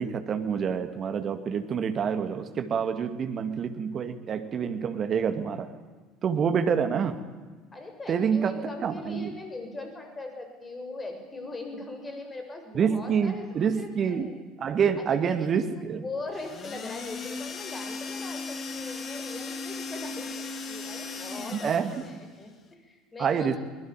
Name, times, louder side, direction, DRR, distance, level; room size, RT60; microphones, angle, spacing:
voice 1, 0.0-5.7 6.2-7.2 8.1-8.5 8.8-9.3 12.7-14.3 14.6-16.0 21.5-21.9 23.2-23.6, right 7 dB, 40° right, 9 dB, 2.1 m, -27 dB
voice 2, 7.7-14.3 15.0-15.6 16.0-23.6, left 2 dB, 20° left, 5 dB, 7.3 m, -40 dB
sound 1, 16.3-22.2, left 4 dB, 40° left, 3.0 m, -37 dB
23.0 x 20.5 x 9.1 m, 1.4 s
figure-of-eight pair, 65°, 0 cm